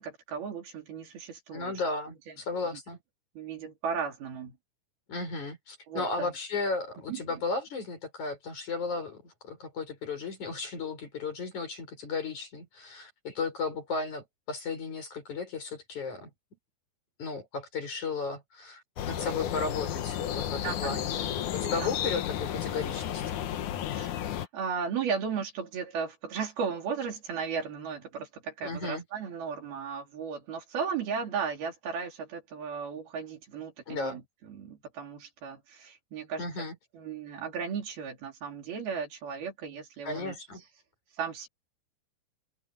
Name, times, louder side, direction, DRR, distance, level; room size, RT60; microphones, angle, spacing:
voice 1, 0.0-1.7 2.3-2.4 3.4-4.6 5.9-6.3 7.1-7.2 20.6-21.0 21.8-21.9 23.9-24.1 24.4-36.7 36.9-40.4 41.2-41.5, right 6 dB, 70° right, 5.4 m, -35 dB
voice 2, 1.5-3.0 5.1-16.3 17.2-23.4 28.6-29.0 33.9-34.2 36.4-36.7 40.0-40.6, left 4 dB, 45° left, 7.5 m, -35 dB
sound 1, 19.0-24.5, left 10 dB, 65° left, 2.3 m, -32 dB
omnidirectional pair, 4.5 m